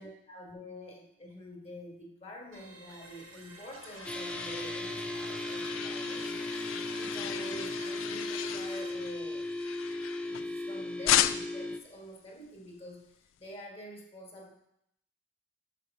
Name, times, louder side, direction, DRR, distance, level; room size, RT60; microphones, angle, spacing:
voice 1, 0.0-9.5 10.3-14.5, equal, 30° left, 0 dB, 1.5 m, -47 dB
sound 1, 2.5-8.9, right 3 dB, 85° right, 1.3 m, -50 dB
sound 2, 3.3-10.6 11.0-11.7, left 12 dB, 80° left, 0.3 m, -35 dB
sound 3, 4.0-11.8, left 2 dB, 5° left, 0.4 m, -36 dB
6.7 x 6.4 x 5.4 m, 0.76 s
head